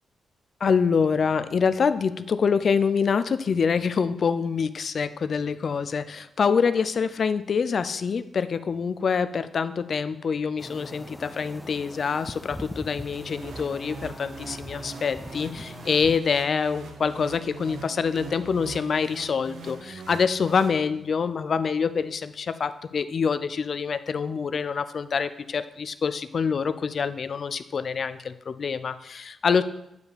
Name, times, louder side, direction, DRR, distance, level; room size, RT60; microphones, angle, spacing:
voice 1, 0.6-29.6, left 6 dB, 60° left, 13 dB, 0.4 m, -26 dB
sound 1, 10.6-16.2, equal, ahead, 0.5 m, -41 dB
sound 2, 13.1-21.3, right 4 dB, 80° right, 0.9 m, -42 dB
7.9 x 4.8 x 5.1 m, 0.84 s
cardioid pair, 60°, 0 cm